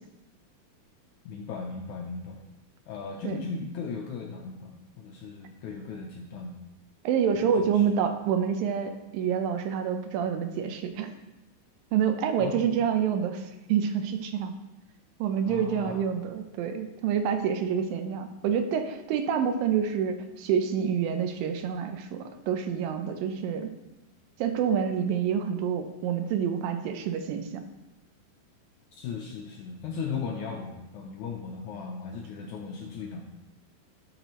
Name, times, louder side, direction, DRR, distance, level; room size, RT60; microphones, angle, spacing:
voice 1, 1.3-2.4 2.9-4.7 5.0-6.5 7.4-7.9 12.4-12.6 15.5-16.1 29.0-33.2, left 5 dB, 80° left, 1 dB, 1.8 m, -37 dB
voice 2, 7.0-11.1 11.9-14.5 15.2-23.7 24.4-27.6, right 7 dB, 80° right, 7 dB, 2.4 m, -27 dB
12.0 x 5.9 x 3.0 m, 1.0 s
omnidirectional pair, 4.1 m